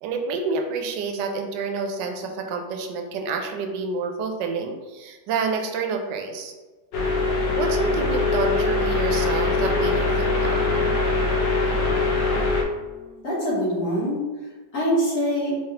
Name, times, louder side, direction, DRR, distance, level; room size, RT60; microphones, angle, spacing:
voice 1, 0.0-6.5 7.6-10.7, right 4 dB, 80° right, 4 dB, 1.2 m, -28 dB
sound 1, 6.9-12.6, left 3 dB, 85° left, 1.3 m, -22 dB
voice 2, 12.6-14.2 14.7-15.5, equal, 60° left, -7 dB, 1.7 m, -25 dB
3.7 x 3.2 x 2.8 m, 1.3 s
omnidirectional pair, 1.9 m